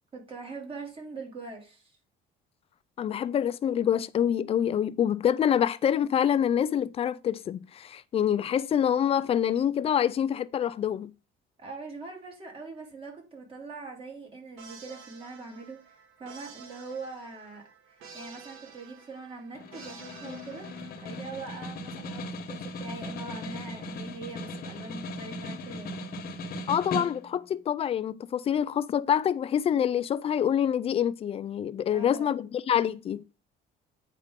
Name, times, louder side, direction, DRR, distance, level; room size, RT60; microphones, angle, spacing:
voice 1, 0.1-2.0 11.6-17.6 17.9-20.7 21.0-26.2 31.9-32.3, right 3 dB, 25° right, 2.6 m, -42 dB
voice 2, 3.0-11.1 26.7-33.2, left 9 dB, 30° left, 0.4 m, -26 dB
sound 1, 14.6-21.4, right 6 dB, 85° right, 1.6 m, -50 dB
Snare drum, 19.5-27.5, left 1 dB, 45° left, 1.2 m, -38 dB
8.3 x 5.0 x 3.7 m
cardioid pair, 160°, 20 cm